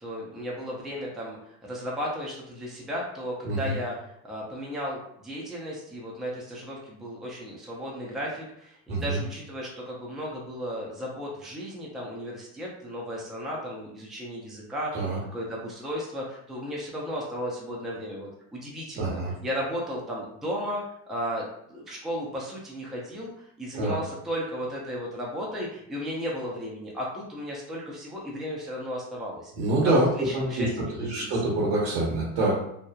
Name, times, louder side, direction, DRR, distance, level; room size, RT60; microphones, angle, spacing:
voice 1, 0.0-20.8 21.1-21.4 21.7-29.5 29.8-29.9 30.2-31.2, equal, ahead, -4 dB, 0.6 m, -35 dB
voice 2, 8.9-9.2 14.9-15.2 19.0-19.3 23.7-24.0 29.6-30.1 30.3-32.6, right 2 dB, 75° right, -5 dB, 1.2 m, -26 dB
3.1 x 2.0 x 2.3 m, 0.73 s
supercardioid pair, 90°, 45 cm